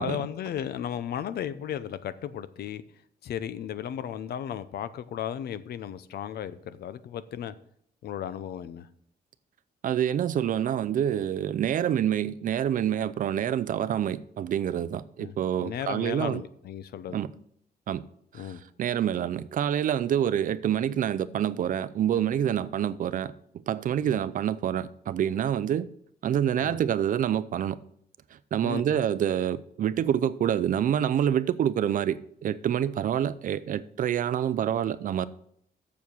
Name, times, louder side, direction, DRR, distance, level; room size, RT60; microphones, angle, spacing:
voice 1, 0.0-2.8 3.2-7.5 8.0-8.9 15.2-15.3 15.6-17.2 18.3-18.6 24.1-24.2 26.6-26.8 28.6-29.0, left 9 dB, 70° left, 0.6 m, -35 dB
voice 2, 9.8-16.4 17.1-17.3 17.9-18.0 18.3-23.3 23.7-25.9 26.2-27.8 28.5-35.3, right 10 dB, 55° right, 0.5 m, -27 dB
7.2 x 7.1 x 6.1 m
wide cardioid pair, 155°, 17 cm